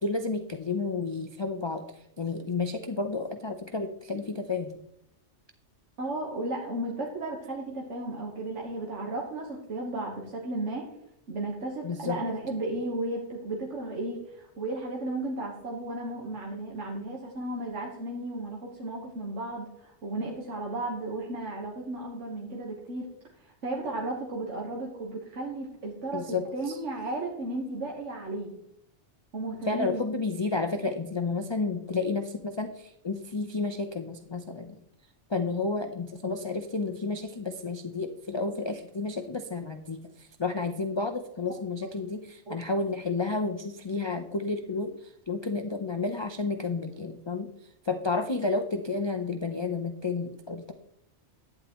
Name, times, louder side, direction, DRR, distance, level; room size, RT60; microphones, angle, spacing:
voice 1, 0.0-4.8 11.8-12.2 26.1-26.8 29.6-34.8 35.3-50.7, left 3 dB, 35° left, 6 dB, 0.5 m, -31 dB
voice 2, 6.0-10.8 11.3-23.1 23.4-26.2 26.5-28.5 29.3-30.0 42.5-42.6, right 2 dB, 85° right, -1 dB, 1.7 m, -34 dB
11.5 x 9.6 x 3.0 m, 0.78 s
omnidirectional pair, 1.2 m